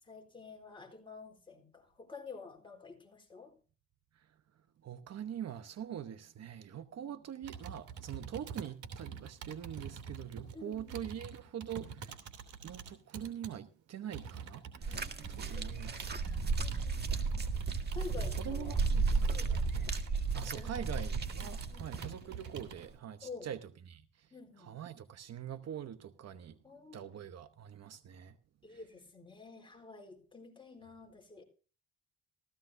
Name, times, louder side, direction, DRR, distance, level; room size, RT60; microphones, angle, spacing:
voice 1, 0.0-3.5 7.0-7.2 10.5-11.2 12.9-13.0 14.8-16.3 16.6-17.5 17.9-18.8 19.3-19.7 20.3-21.0 21.7-21.9 23.2-23.5 24.3-24.7 26.6-27.1 28.6-31.4, left 4 dB, 15° left, 4.2 m, -50 dB
voice 2, 4.8-12.2 12.6-15.1 15.4-16.2 18.4-19.9 20.3-24.3 24.6-26.6 26.9-28.4 28.7-28.8, right 9 dB, 60° right, 1.0 m, -44 dB
Computer keyboard, 7.4-13.5 14.1-22.9, right 6 dB, 75° right, 2.9 m, -46 dB
sound 1, 14.8-22.1 22.9-23.0, right 4 dB, 35° right, 1.8 m, -34 dB
16.0 x 15.0 x 2.6 m
cardioid pair, 90°, 30 cm